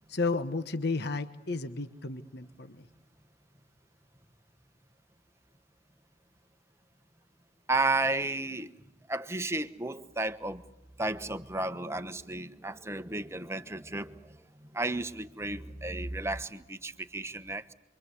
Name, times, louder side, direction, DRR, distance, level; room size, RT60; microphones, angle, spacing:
voice 1, 0.1-2.9, left 3 dB, 55° left, 10 dB, 1.2 m, -33 dB
voice 2, 7.7-8.7 9.1-10.6 11.0-17.7, right 2 dB, 15° right, 10 dB, 1.1 m, -33 dB
28.5 x 24.0 x 8.3 m, 0.92 s
head